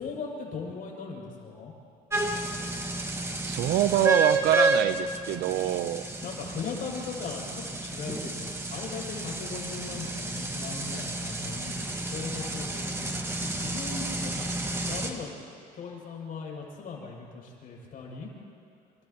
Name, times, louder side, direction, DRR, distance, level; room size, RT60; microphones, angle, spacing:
voice 1, 0.0-1.7 6.2-14.5 14.8-15.3 15.8-18.3, left 5 dB, 60° left, -2 dB, 7.3 m, -38 dB
sound 1, 2.1-15.1, right 2 dB, 15° right, 1.9 m, -31 dB
voice 2, 3.4-6.0, right 13 dB, 80° right, 13 dB, 0.8 m, -25 dB
29.5 x 28.0 x 3.1 m, 2.3 s
cardioid pair, 110°, 17 cm